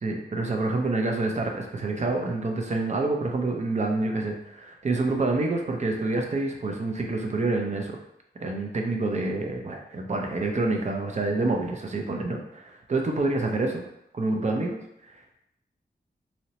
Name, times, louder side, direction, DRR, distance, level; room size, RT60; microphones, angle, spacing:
voice 1, 0.0-8.0 8.4-13.8 14.1-14.8 15.1-15.4, right 2 dB, 45° right, 2 dB, 0.5 m, -27 dB
2.7 x 2.0 x 2.9 m, 0.80 s
wide cardioid pair, 75°, 17 cm